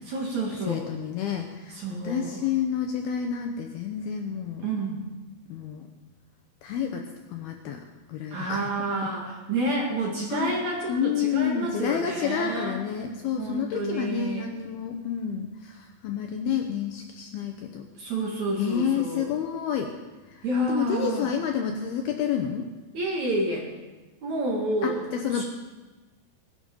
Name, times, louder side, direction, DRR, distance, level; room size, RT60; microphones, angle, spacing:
voice 1, 0.1-0.9 1.7-2.5 4.6-5.0 8.3-12.8 13.4-14.5 17.9-19.4 20.4-21.3 22.9-23.7 24.2-25.0 25.3-25.4, right 2 dB, 50° right, -1 dB, 2.5 m, -29 dB
voice 2, 0.7-1.8 2.0-4.7 5.5-5.8 6.6-7.0 7.3-7.8 8.1-8.7 10.3-10.6 10.9-17.8 18.6-19.9 20.7-22.7 24.8-25.4, left 8 dB, 75° left, 4 dB, 2.4 m, -29 dB
19.5 x 12.0 x 5.3 m, 1.2 s
omnidirectional pair, 5.3 m